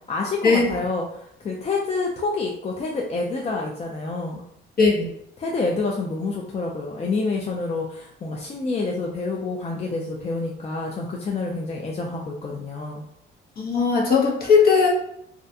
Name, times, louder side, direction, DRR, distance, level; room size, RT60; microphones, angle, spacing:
voice 1, 0.1-4.4 5.4-13.0, left 3 dB, 30° left, -1 dB, 0.4 m, -28 dB
voice 2, 13.6-14.9, left 5 dB, 50° left, -2 dB, 0.8 m, -18 dB
2.4 x 2.1 x 2.6 m, 0.73 s
cardioid pair, 90°, 20 cm